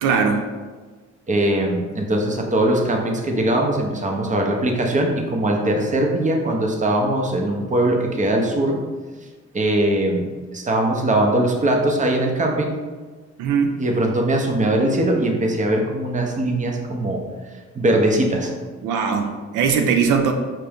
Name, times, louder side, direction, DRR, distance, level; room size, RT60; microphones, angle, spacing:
voice 1, 0.0-0.4 13.4-13.8 18.8-20.3, right 6 dB, 90° right, 4 dB, 0.5 m, -20 dB
voice 2, 1.3-8.8 9.5-12.7 13.8-17.2 17.7-18.5, right 1 dB, 25° right, 2 dB, 0.7 m, -21 dB
5.8 x 2.6 x 3.4 m, 1.4 s
cardioid pair, 90°, 30 cm